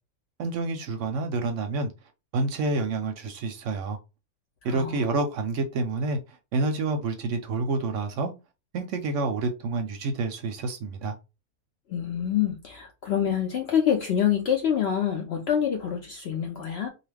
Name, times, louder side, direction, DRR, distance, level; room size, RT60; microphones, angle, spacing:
voice 1, 0.4-1.9 2.3-4.0 4.6-6.2 6.5-8.3 8.7-11.1, right 3 dB, 70° right, 0.8 m, -28 dB
voice 2, 4.6-5.1 11.9-16.9, left 9 dB, 65° left, 0.6 m, -26 dB
2.6 x 2.4 x 3.2 m
omnidirectional pair, 1.5 m